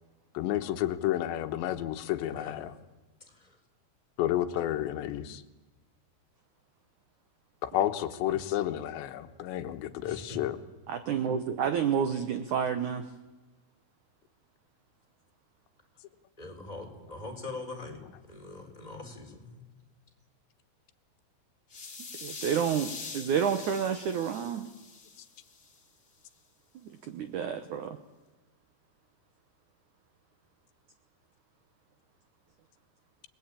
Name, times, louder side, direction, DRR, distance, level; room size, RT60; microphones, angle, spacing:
voice 1, 0.4-2.7 4.2-5.4 7.6-10.6, left 13 dB, 85° left, 8 dB, 3.4 m, -31 dB
voice 2, 3.3-3.6 10.0-10.5 16.4-19.7, left 2 dB, 10° left, 1 dB, 4.1 m, -43 dB
voice 3, 10.9-13.0 22.2-24.7 27.1-28.0, right 7 dB, 80° right, 9 dB, 1.7 m, -29 dB
sound 1, 21.7-25.8, left 4 dB, 25° left, 2.9 m, -44 dB
29.5 x 20.5 x 8.9 m, 1.2 s
omnidirectional pair, 5.1 m